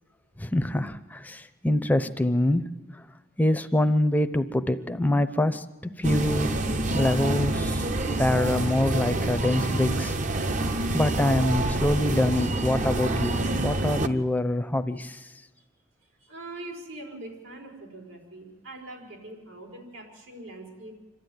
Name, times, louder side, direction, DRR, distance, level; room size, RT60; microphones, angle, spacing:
voice 1, 0.4-3.1 3.4-6.7 6.9-7.9 8.2-10.6 10.9-15.3, left 1 dB, 10° left, 10 dB, 0.7 m, -25 dB
sound 1, 6.0-14.1, right 2 dB, 40° right, 0.8 m, -27 dB
voice 2, 16.2-20.9, right 2 dB, 85° right, 0 dB, 4.9 m, -42 dB
26.5 x 13.0 x 9.4 m, 1.2 s
head